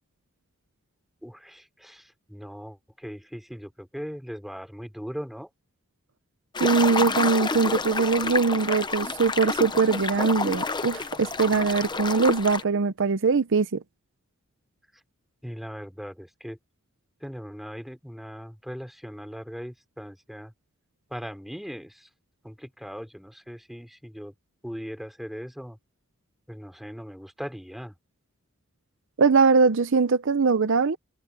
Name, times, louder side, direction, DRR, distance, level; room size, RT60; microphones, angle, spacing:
voice 1, 1.2-5.5 15.4-16.6 17.2-20.5 21.1-22.1 22.4-24.3 24.6-25.8 26.5-27.9, equal, ahead, 3.8 m, -39 dB
sound 1, 6.5-12.6, left 4 dB, 20° left, 0.8 m, -29 dB
voice 2, 6.6-13.8 29.2-31.0, right 4 dB, 60° right, 0.7 m, -22 dB
head